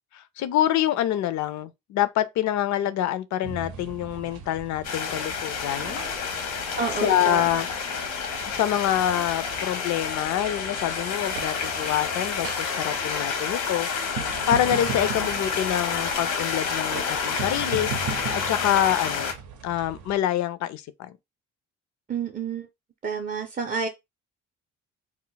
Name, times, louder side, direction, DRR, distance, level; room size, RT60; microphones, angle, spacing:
voice 1, 0.1-6.0 6.5-7.7 8.5-13.9 14.5-17.9 18.5-19.3 19.6-21.2, left 12 dB, 70° left, 0.4 m, -26 dB
sound 1, 3.4-20.2, right 6 dB, 80° right, 0.6 m, -39 dB
sound 2, 4.8-19.3, left 6 dB, 85° left, 0.8 m, -29 dB
voice 2, 6.8-7.4 22.1-22.7 23.0-23.9, right 5 dB, 25° right, 0.5 m, -29 dB
2.1 x 2.1 x 3.8 m
cardioid pair, 90°, 30 cm